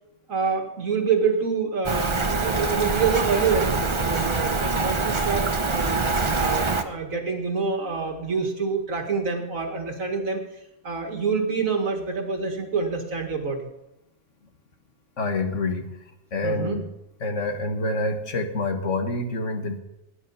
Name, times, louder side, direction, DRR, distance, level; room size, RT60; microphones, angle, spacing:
voice 1, 0.3-6.0 6.3-10.4 10.8-13.6 16.4-16.8, right 5 dB, 85° right, 3 dB, 2.4 m, -26 dB
Rain, 1.8-6.8, right 3 dB, 25° right, 0.8 m, -24 dB
voice 2, 15.2-15.9 16.3-16.8 17.2-19.8, left 2 dB, 65° left, 5 dB, 2.0 m, -27 dB
18.0 x 10.0 x 5.6 m, 0.89 s
omnidirectional pair, 1.4 m